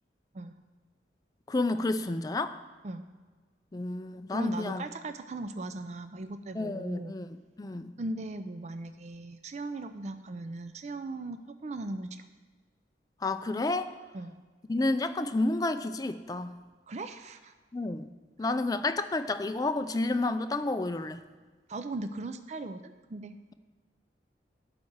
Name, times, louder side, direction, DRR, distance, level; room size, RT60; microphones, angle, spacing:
voice 1, 1.5-2.6 3.7-4.8 6.5-8.0 13.2-14.0 14.7-16.6 17.7-18.1 18.4-21.2, left 2 dB, 20° left, 10 dB, 0.4 m, -30 dB
voice 2, 4.3-7.1 8.0-12.3 14.1-14.4 16.9-17.5 21.7-23.4, right 2 dB, 40° right, 9 dB, 0.4 m, -38 dB
11.0 x 4.2 x 7.9 m, 1.4 s
head